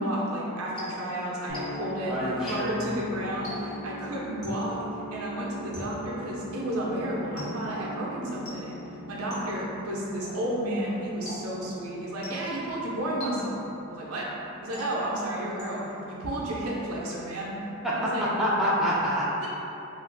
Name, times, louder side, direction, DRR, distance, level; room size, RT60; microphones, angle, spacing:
voice 1, 0.0-8.8 9.1-13.6 13.9-14.3 14.6-15.8 16.1-17.5 18.0-18.2 19.4-19.5, right 1 dB, 80° right, -5 dB, 0.6 m, -32 dB
sound 1, 0.8-2.0 2.5-2.9 3.4-3.9 4.4-4.8 5.7-6.2 7.4-7.8 8.5-8.9 9.3-9.7 10.2-10.6 11.3-11.8 12.2-12.7 13.2-13.8 14.7-15.2 15.6-16.1, left 1 dB, 85° left, 1.1 m, -42 dB
sound 2, 1.5-17.4, left 1 dB, 65° left, 0.5 m, -42 dB
voice 2, 2.1-2.8 17.8-19.2, equal, ahead, -9 dB, 0.4 m, -26 dB
2.4 x 2.3 x 3.3 m, 2.9 s
head